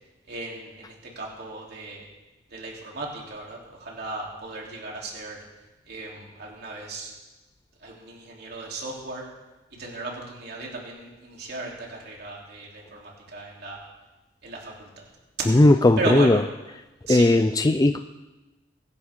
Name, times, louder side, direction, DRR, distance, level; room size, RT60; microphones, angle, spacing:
voice 1, 0.3-2.0 2.5-5.4 5.9-7.1 7.8-9.2 9.7-13.8 14.4-14.9 15.4-15.5 16.0-16.4 17.1-17.3, right 2 dB, 60° right, -3 dB, 3.4 m, -35 dB
voice 2, 15.5-16.4 17.1-18.0, left 2 dB, 20° left, 8 dB, 0.4 m, -17 dB
24.0 x 11.0 x 3.8 m, 1.1 s
head